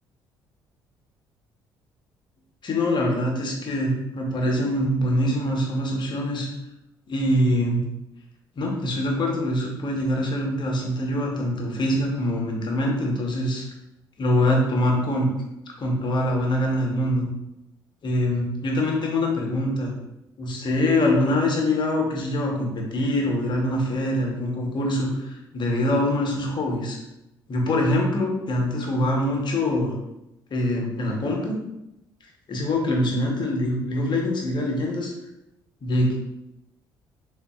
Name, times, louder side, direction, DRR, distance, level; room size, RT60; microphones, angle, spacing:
voice 1, 2.6-6.5 7.1-7.8 8.6-13.7 14.2-15.3 15.8-17.3 18.0-20.0 20.4-27.0 27.5-29.9 30.5-31.6 32.5-35.1 35.8-36.1, left 1 dB, 45° left, 0 dB, 0.9 m, -24 dB
3.6 x 2.5 x 2.3 m, 0.87 s
hypercardioid pair, 50°, 11 cm